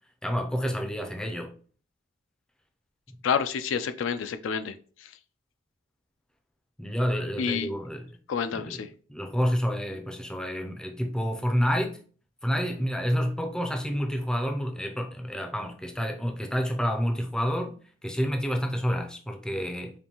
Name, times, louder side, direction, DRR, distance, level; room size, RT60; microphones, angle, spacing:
voice 1, 0.2-1.5 3.1-3.2 6.8-8.1 8.5-8.8 9.1-12.0 12.4-17.8 18.0-19.9, equal, 5° left, 0.4 m, -29 dB
voice 2, 3.2-4.7 7.4-7.7 8.3-8.9, left 6 dB, 75° left, 0.4 m, -28 dB
5.1 x 2.6 x 2.8 m
head